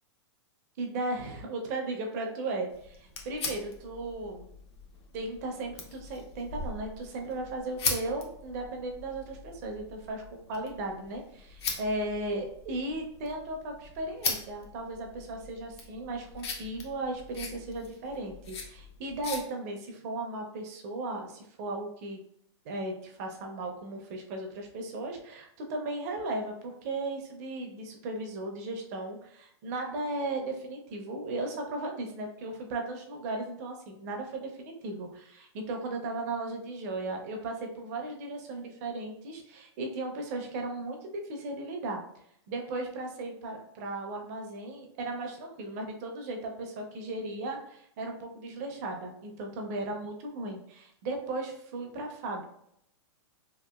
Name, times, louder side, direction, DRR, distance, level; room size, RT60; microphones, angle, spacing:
voice 1, 0.8-4.5 5.1-10.2 10.5-22.2 22.6-42.0 42.5-52.4, right 2 dB, 35° right, 2 dB, 0.5 m, -36 dB
sound 1, 2.7-19.4, left 4 dB, 60° left, 0.6 m, -40 dB
2.8 x 2.6 x 2.2 m, 0.74 s
hypercardioid pair, 160°, 15 cm